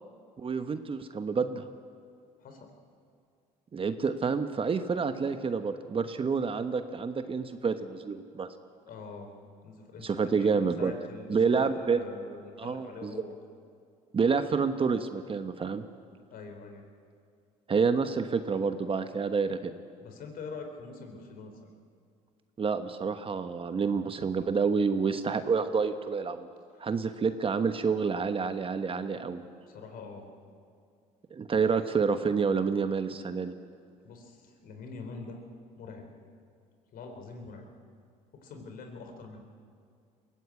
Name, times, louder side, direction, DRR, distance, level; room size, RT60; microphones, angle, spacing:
voice 1, 0.4-1.7 3.7-8.5 10.0-10.9 11.3-12.0 12.6-13.2 14.1-15.8 17.7-19.7 22.6-26.5 26.8-29.4 31.3-33.5, right 5 dB, 35° right, 9 dB, 1.1 m, -28 dB
voice 2, 2.4-2.7 8.9-9.3 9.6-13.4 16.3-16.8 20.0-21.7 29.7-30.3 34.0-35.4 35.8-36.1 36.9-37.7 38.3-39.4, left 4 dB, 60° left, 4 dB, 4.0 m, -44 dB
21.5 x 17.0 x 8.5 m, 2.2 s
supercardioid pair, 80°, 17 cm